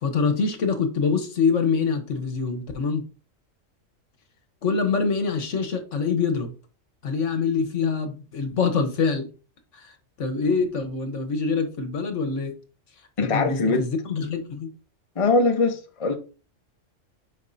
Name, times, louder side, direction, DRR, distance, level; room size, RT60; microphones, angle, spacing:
voice 1, 0.0-3.0 4.6-6.5 7.0-9.3 9.7-12.5 13.2-14.7, left 5 dB, 70° left, 1.4 m, -25 dB
voice 2, 13.2-13.8 15.2-16.1, left 3 dB, 30° left, 0.9 m, -21 dB
8.7 x 5.2 x 2.7 m
omnidirectional pair, 1.3 m